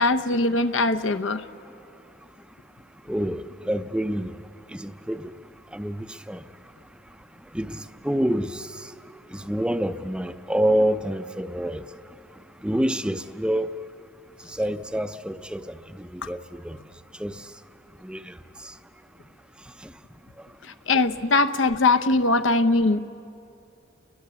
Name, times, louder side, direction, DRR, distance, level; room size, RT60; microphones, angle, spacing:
voice 1, 0.0-1.4 16.2-16.3 20.6-23.0, left 3 dB, 75° left, 0.8 m, -21 dB
voice 2, 3.1-4.4 4.7-5.3 5.7-6.4 7.5-8.9 9.3-11.8 12.6-13.7 14.5-16.4 16.6-16.8 17.2-17.4 18.0-18.3, right 1 dB, 5° right, 0.5 m, -27 dB
30.0 x 22.0 x 7.0 m
head